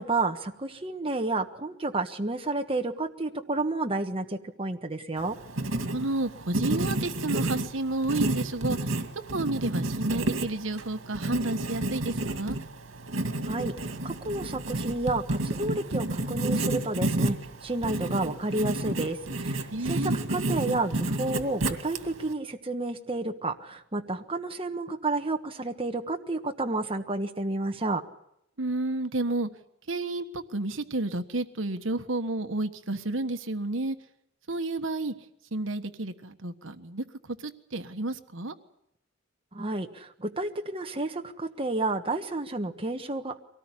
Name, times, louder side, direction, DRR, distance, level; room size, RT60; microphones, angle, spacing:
voice 1, 0.0-5.4 13.5-13.7 14.0-17.4 17.6-28.0 39.5-43.4, right 2 dB, 30° right, 4 dB, 1.4 m, -31 dB
Writing, 5.2-22.3, right 2 dB, 90° right, 2.2 m, -31 dB
voice 2, 5.9-8.8 9.3-12.6 19.7-20.2 28.6-29.5 29.9-34.0 34.5-35.1 35.5-38.5, right 2 dB, 75° right, 8 dB, 1.4 m, -31 dB
24.0 x 18.5 x 9.9 m, 0.78 s
head